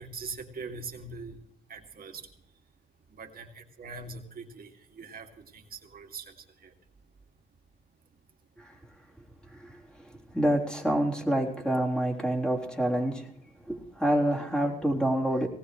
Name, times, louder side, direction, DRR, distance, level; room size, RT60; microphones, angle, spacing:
voice 1, 0.0-1.4 1.7-2.2 3.2-4.7 5.0-6.2 6.6-6.7, right 4 dB, 45° right, 4 dB, 2.5 m, -42 dB
voice 2, 9.5-9.8 10.3-13.3 13.7-15.5, right 1 dB, 5° left, -1 dB, 3.9 m, -27 dB
19.5 x 19.0 x 3.3 m, 0.69 s
cardioid pair, 90°, 20 cm